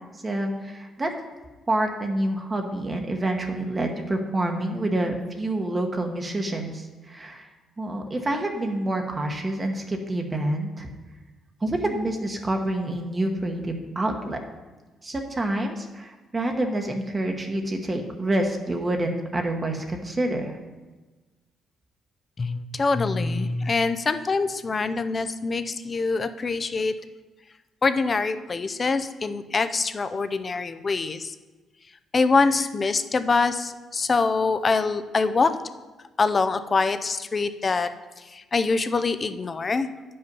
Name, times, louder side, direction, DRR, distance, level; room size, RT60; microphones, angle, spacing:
voice 1, 0.2-1.1 1.7-7.5 7.8-10.9 11.6-14.4 15.0-20.6, right 1 dB, 25° right, 3 dB, 1.0 m, -27 dB
voice 2, 22.4-26.9 27.8-31.4 32.1-35.5 36.2-37.9 38.2-39.9, left 4 dB, 35° left, 11 dB, 0.5 m, -24 dB
9.3 x 5.5 x 5.4 m, 1.2 s
cardioid pair, 90°, 0 cm